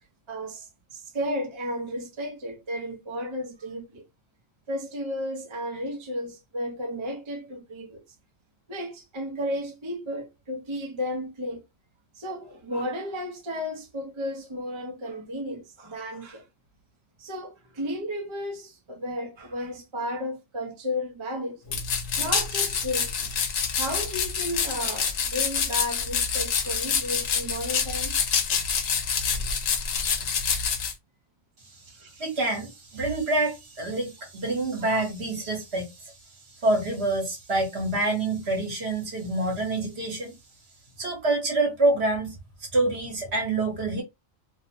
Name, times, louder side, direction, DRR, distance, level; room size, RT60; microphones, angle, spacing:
voice 1, 0.3-4.0 4.7-8.0 8.7-11.6 12.1-16.5 17.2-21.8 22.2-23.3 23.7-28.2 31.9-32.2 34.8-35.0, equal, 30° right, 0.6 m, -33 dB
sound 1, 21.7-30.9, left 6 dB, 80° left, 1.0 m, -27 dB
voice 2, 32.2-36.1 36.6-40.3 41.0-42.4 42.7-44.0, right 2 dB, 55° right, 1.3 m, -26 dB
2.7 x 2.1 x 2.7 m
omnidirectional pair, 1.3 m